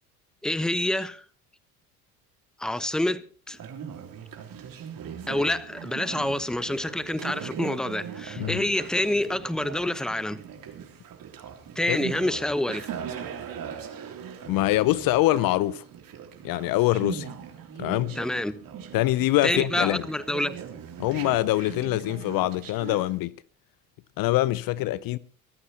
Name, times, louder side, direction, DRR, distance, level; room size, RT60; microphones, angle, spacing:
voice 1, 0.4-1.2 2.6-3.6 5.3-10.4 11.7-12.9 18.2-18.6 19.4-20.6, left 1 dB, ahead, 1.0 m, -27 dB
Conversation, 3.5-23.2, right 8 dB, 50° right, 3.3 m, -40 dB
voice 2, 14.5-15.8 16.4-17.3 17.8-18.2 18.9-20.0 21.0-23.3 24.2-25.2, left 16 dB, 50° left, 0.7 m, -24 dB
23.5 x 14.5 x 2.9 m
hypercardioid pair, 65°, 44 cm